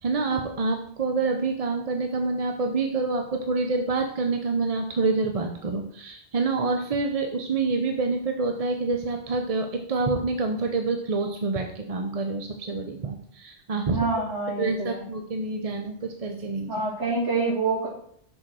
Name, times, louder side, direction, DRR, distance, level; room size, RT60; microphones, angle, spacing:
voice 1, 0.0-14.2 14.6-16.7, right 3 dB, 40° right, 4 dB, 0.6 m, -27 dB
voice 2, 13.9-15.0 16.7-17.9, right 3 dB, 80° right, -9 dB, 2.7 m, -27 dB
6.2 x 4.6 x 6.1 m, 0.65 s
omnidirectional pair, 1.2 m